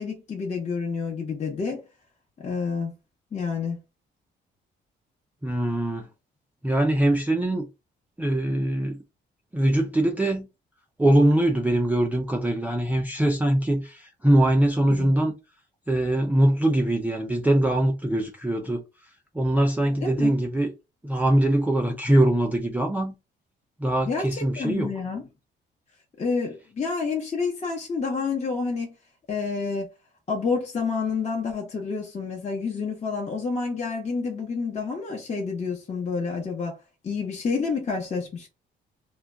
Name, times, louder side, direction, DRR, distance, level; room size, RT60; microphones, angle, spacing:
voice 1, 0.0-1.8 2.4-2.9 3.3-3.8 14.9-15.1 19.9-20.3 24.0-25.2 26.2-28.9 29.3-29.9 30.3-36.8 37.0-38.5, left 5 dB, 35° left, 0.7 m, -29 dB
voice 2, 5.4-6.1 6.6-7.7 8.2-9.0 9.5-10.5 11.0-15.3 15.9-18.8 19.3-20.7 21.0-23.1 23.8-24.9, right 1 dB, 10° right, 0.3 m, -22 dB
2.1 x 2.1 x 3.5 m
cardioid pair, 90°, 20 cm